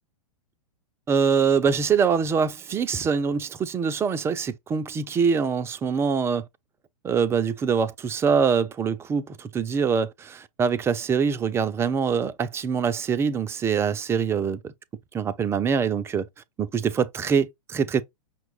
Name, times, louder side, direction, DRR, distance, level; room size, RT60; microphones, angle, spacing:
voice 1, 1.1-6.4 7.0-14.7 15.1-16.3 16.6-18.0, right 6 dB, 15° right, 0.3 m, -24 dB
5.9 x 2.2 x 3.0 m
hypercardioid pair, 120°, 19 cm